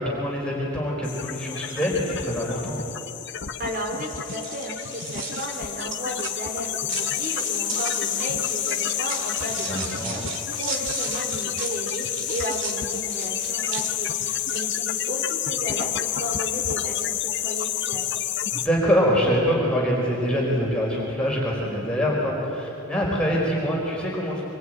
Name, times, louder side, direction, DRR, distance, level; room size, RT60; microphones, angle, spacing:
voice 1, 0.0-2.8 9.6-10.2 18.5-24.4, equal, 5° left, -4 dB, 4.6 m, -24 dB
sound 1, 1.0-18.7, left 11 dB, 55° left, 1.0 m, -29 dB
voice 2, 3.6-18.3, equal, 40° right, 1 dB, 4.3 m, -34 dB
sound 2, 3.9-15.0, right 5 dB, 55° right, 2.2 m, -36 dB
25.5 x 22.5 x 9.2 m, 2.9 s
head